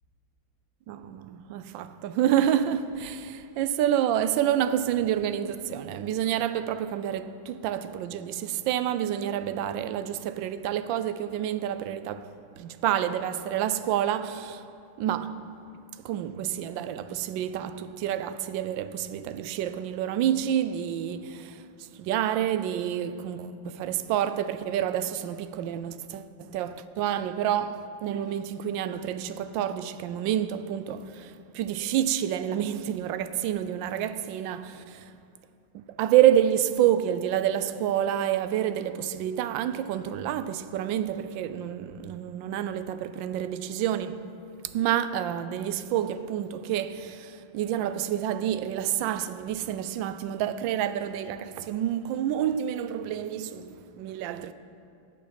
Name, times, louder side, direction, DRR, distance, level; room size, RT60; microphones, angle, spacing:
voice 1, 0.9-14.6 15.0-15.6 16.0-35.1 35.7-44.3 44.6-54.5, right 10 dB, 75° right, 1.2 m, -28 dB
17.5 x 7.4 x 5.1 m
omnidirectional pair, 2.2 m